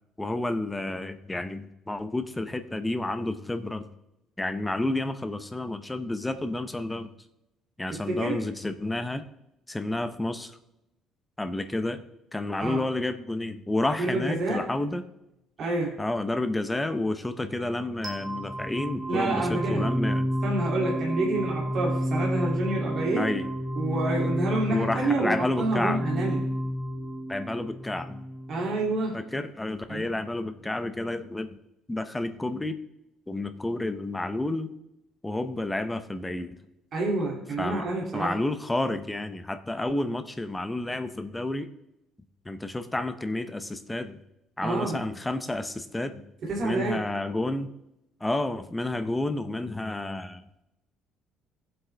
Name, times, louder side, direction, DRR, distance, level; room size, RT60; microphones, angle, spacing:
voice 1, 0.2-3.9 4.4-7.1 7.8-9.3 9.7-10.5 11.4-12.0 12.3-15.0 16.0-20.3 23.2-23.5 24.7-26.0 27.3-28.3 29.1-31.6 31.9-32.8 33.3-34.7 35.2-36.5 37.6-37.9 38.1-41.7 42.5-44.2 44.6-46.3 46.6-47.7 48.2-50.4, left 2 dB, 5° left, 9 dB, 0.6 m, -30 dB
voice 2, 7.9-8.4 12.6-12.9 14.0-14.7 15.6-16.0 19.1-19.9 20.4-23.3 23.7-26.5 28.5-29.2 29.9-30.1 36.9-38.4 44.6-45.0 46.4-47.0, right 2 dB, 40° right, -3 dB, 2.5 m, -28 dB
sound 1, 18.0-29.0, equal, 20° right, 1.4 m, -31 dB
17.0 x 7.6 x 3.3 m, 0.88 s
cardioid pair, 180°, 0 cm